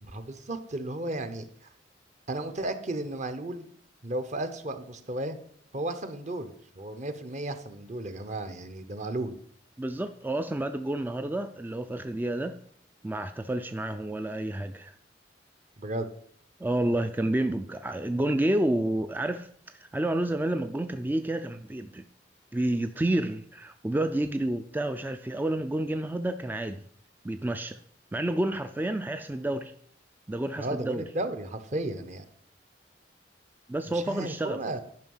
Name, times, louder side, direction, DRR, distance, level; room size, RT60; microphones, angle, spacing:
voice 1, 0.0-1.7 2.3-3.7 4.0-5.4 5.7-9.3 15.8-16.1 30.6-32.3 33.8-34.8, right 1 dB, 40° right, 0.9 m, -34 dB
voice 2, 9.8-12.6 13.0-14.9 16.6-19.5 19.7-22.0 22.5-26.8 27.2-27.8 28.1-29.7 30.3-31.0 33.7-34.6, right 1 dB, 10° right, 0.3 m, -29 dB
10.5 x 5.6 x 5.5 m
head